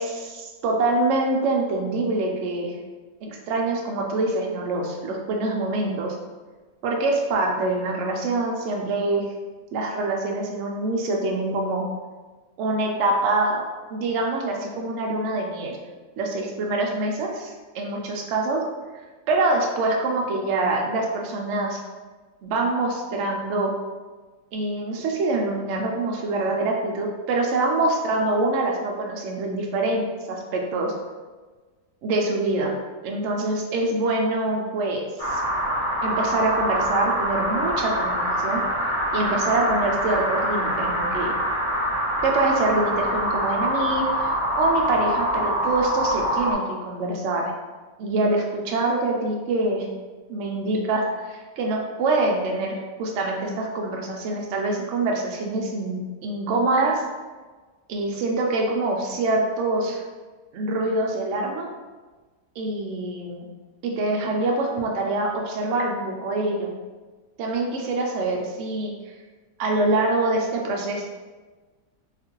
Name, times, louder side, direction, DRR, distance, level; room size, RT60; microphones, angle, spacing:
voice 1, 0.0-2.7 3.2-6.1 6.8-9.3 9.7-11.8 12.6-13.6 13.9-15.8 16.2-18.6 19.3-21.8 22.4-23.7 24.5-30.9 32.0-32.7 33.0-35.4 36.0-38.6 39.1-41.3 42.2-47.5 48.0-49.9 50.3-57.0 57.9-60.0 60.5-61.7 62.6-63.5 63.8-66.7 67.4-68.9 69.6-71.0, right 2 dB, 80° right, 0 dB, 0.6 m, -25 dB
sound 1, 35.2-46.5, equal, 35° left, 0.6 m, -25 dB
2.9 x 2.4 x 2.9 m, 1.3 s
omnidirectional pair, 1.8 m